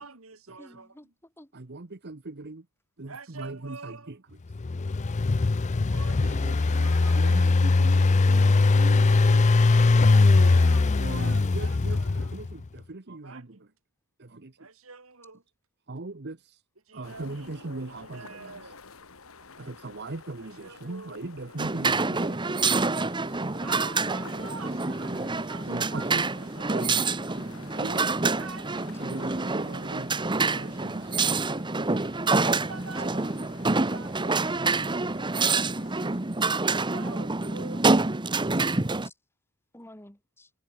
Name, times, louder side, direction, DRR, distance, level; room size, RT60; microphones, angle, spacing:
voice 1, 0.0-1.0 3.1-4.1 5.9-7.3 9.8-12.4 13.1-13.7 14.6-15.4 16.9-18.8 20.4-21.3 23.6-26.9 28.4-31.1 32.4-33.4 36.7-38.3, right 4 dB, 75° right, 3.5 m, -46 dB
voice 2, 0.6-1.5 9.0-9.1 38.4-38.5 39.0-39.1 39.7-40.5, left 1 dB, 10° left, 2.8 m, -51 dB
voice 3, 1.5-2.7 3.0-4.2 6.2-9.5 11.0-13.7 14.2-14.7 15.9-16.6 16.9-18.7 19.6-23.6 24.9-25.3 25.7-26.3 26.7-27.1 27.7-28.2 29.0-31.1, right 2 dB, 50° right, 1.1 m, -40 dB
Engine, 4.5-12.5, left 3 dB, 35° left, 0.5 m, -21 dB
sound 1, 17.0-36.2, left 4 dB, 80° left, 2.1 m, -50 dB
sound 2, 21.6-39.1, right 3 dB, 20° right, 1.0 m, -27 dB
head